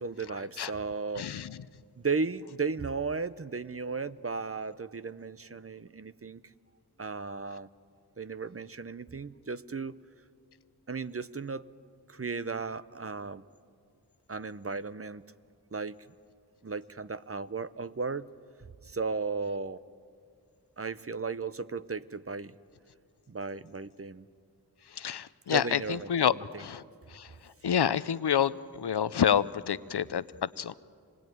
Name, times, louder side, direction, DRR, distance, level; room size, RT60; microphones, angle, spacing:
voice 1, 0.0-1.3 2.0-6.4 7.0-7.7 8.2-10.0 10.9-11.7 12.1-13.4 14.3-15.2 15.7-16.0 16.6-18.3 18.8-19.8 20.8-22.5 23.3-24.3 25.5-26.7, right 4 dB, 35° right, 14 dB, 0.6 m, -35 dB
voice 2, 1.2-1.5 25.0-26.3 26.6-26.8 27.1-27.3 27.6-30.7, left 8 dB, 75° left, 17 dB, 0.6 m, -28 dB
27.0 x 20.5 x 9.2 m, 2.4 s
wide cardioid pair, 65°, 40 cm